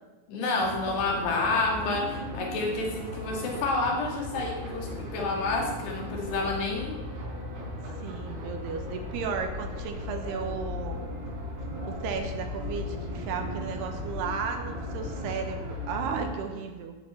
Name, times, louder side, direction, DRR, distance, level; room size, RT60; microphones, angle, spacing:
voice 1, 0.3-7.0, left 3 dB, 75° left, 1 dB, 4.4 m, -29 dB
sound 1, 0.6-16.2, left 1 dB, 50° right, 5.0 m, -37 dB
voice 2, 8.0-11.0 11.8-17.0, right 6 dB, 75° right, 5 dB, 3.4 m, -34 dB
15.0 x 8.9 x 8.0 m, 1.2 s
omnidirectional pair, 4.8 m